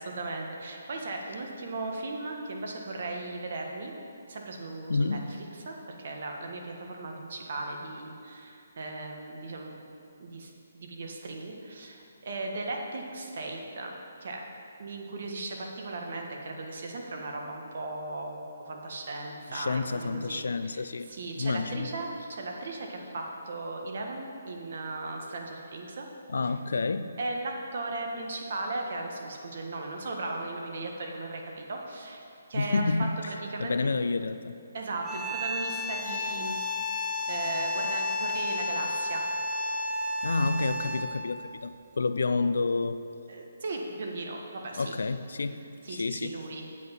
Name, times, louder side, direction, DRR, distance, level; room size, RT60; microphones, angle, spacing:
voice 1, 0.0-3.9 4.3-5.2 5.5-9.8 10.2-13.9 14.2-14.4 14.8-26.1 26.4-26.5 27.2-32.2 32.5-32.8 33.3-33.9 34.7-36.6 37.3-39.2 43.3-44.9 45.8-46.6, right 2 dB, 60° right, 1 dB, 1.5 m, -37 dB
voice 2, 4.9-5.4 19.5-21.1 21.4-21.9 26.3-27.2 32.5-33.2 33.6-34.6 40.2-43.0 44.8-46.4, left 3 dB, 80° left, 12 dB, 0.4 m, -29 dB
sound 1, 35.0-41.2, left 2 dB, ahead, 0.7 m, -32 dB
8.3 x 6.1 x 7.1 m, 2.6 s
hypercardioid pair, 160°, 0 cm